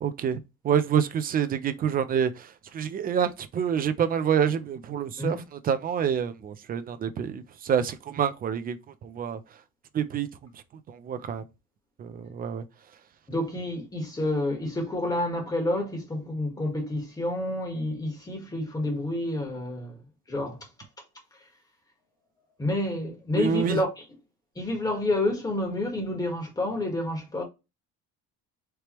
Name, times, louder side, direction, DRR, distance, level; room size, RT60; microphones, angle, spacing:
voice 1, 0.0-2.5 2.7-9.4 9.9-10.3 10.9-11.4 12.0-12.6 23.3-23.8, right 8 dB, 30° right, 0.4 m, -27 dB
voice 2, 13.3-20.0 20.3-20.7 22.6-24.0 24.5-27.4, left 1 dB, 10° left, 1.4 m, -29 dB
4.4 x 3.4 x 3.0 m
cardioid pair, 175°, 33 cm